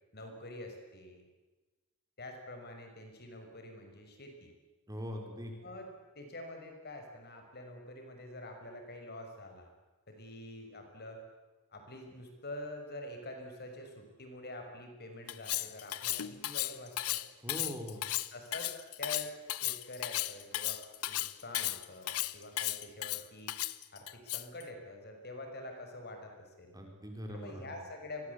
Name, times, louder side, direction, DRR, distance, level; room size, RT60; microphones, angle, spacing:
voice 1, 0.1-1.3 2.2-4.5 5.6-5.9 6.2-9.7 10.1-11.2 11.7-17.2 18.3-18.7 19.0-19.3 19.6-23.5 23.9-26.8 27.3-28.3, left 1 dB, 45° left, 4 dB, 6.0 m, -46 dB
voice 2, 4.9-5.5 17.4-18.0 26.7-27.8, equal, 15° right, 2 dB, 4.9 m, -42 dB
Cutlery silverware, 15.3-24.6, left 15 dB, 85° left, 1.0 m, -35 dB
29.0 x 23.0 x 8.4 m, 1.2 s
head